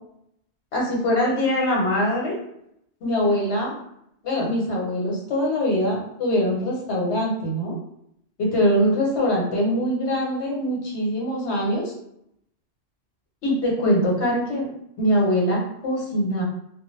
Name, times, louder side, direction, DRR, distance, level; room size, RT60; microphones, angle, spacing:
voice 1, 0.7-2.4 3.0-3.7 4.2-7.8 8.4-11.9 13.4-14.7 15.0-16.4, equal, 75° left, -2 dB, 1.0 m, -23 dB
2.1 x 2.0 x 3.0 m, 0.75 s
omnidirectional pair, 1.1 m